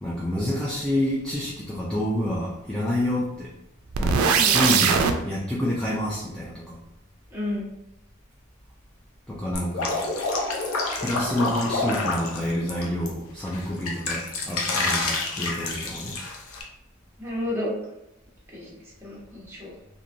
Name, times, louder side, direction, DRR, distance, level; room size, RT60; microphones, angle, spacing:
voice 1, 0.0-3.5 4.0-5.0 5.2-6.8 9.3-10.0 11.0-16.2, left 1 dB, 5° left, -6 dB, 0.4 m, -28 dB
sound 1, 3.9-5.1, right 6 dB, 80° right, 0.3 m, -20 dB
voice 2, 4.3-4.8 7.3-7.7 17.2-17.8 18.5-19.7, left 1 dB, 10° right, -6 dB, 0.9 m, -32 dB
Drip, 9.5-13.1 13.5-16.6, left 3 dB, 90° left, 0.6 m, -28 dB
3.0 x 2.6 x 2.5 m, 0.83 s
head